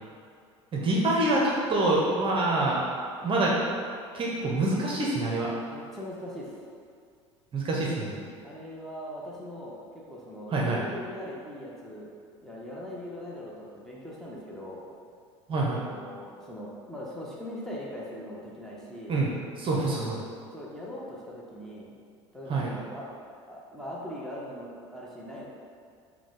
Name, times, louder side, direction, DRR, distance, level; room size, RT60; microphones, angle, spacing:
voice 1, 0.7-2.8 3.2-3.6 4.1-5.5 7.5-8.2 10.5-10.8 15.5-15.8 19.1-19.3 19.6-20.2 22.5-22.7, right 2 dB, 35° right, -3 dB, 0.7 m, -26 dB
voice 2, 5.7-6.6 8.4-12.1 12.4-14.9 15.6-19.2 19.7-20.1 20.5-21.9 22.3-23.1 23.5-25.5, left 1 dB, 5° left, -5 dB, 0.8 m, -41 dB
4.8 x 2.2 x 3.7 m, 2.2 s
hypercardioid pair, 70°, 15 cm